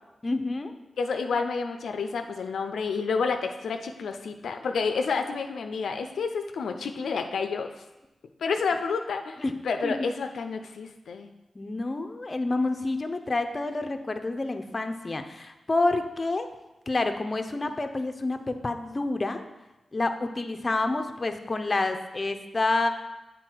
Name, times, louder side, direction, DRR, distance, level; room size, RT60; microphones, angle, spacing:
voice 1, 0.2-0.8 9.4-9.6 9.8-10.0 11.5-16.5 16.9-19.4 19.9-22.9, left 2 dB, 35° left, 7 dB, 0.5 m, -28 dB
voice 2, 1.0-7.8 8.4-11.3, left 5 dB, 85° left, 6 dB, 0.4 m, -29 dB
7.5 x 4.0 x 4.5 m, 1.0 s
cardioid pair, 65°, 0 cm